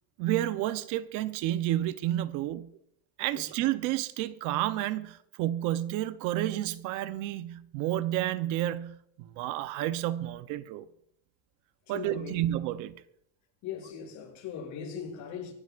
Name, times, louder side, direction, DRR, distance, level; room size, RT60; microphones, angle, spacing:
voice 1, 0.2-2.7 3.2-10.9 11.9-13.0, right 14 dB, 60° right, 0.8 m, -30 dB
voice 2, 11.9-12.4 13.6-15.5, left 7 dB, 55° left, 7.2 m, -39 dB
25.0 x 12.0 x 2.5 m
cardioid pair, 155°, 35 cm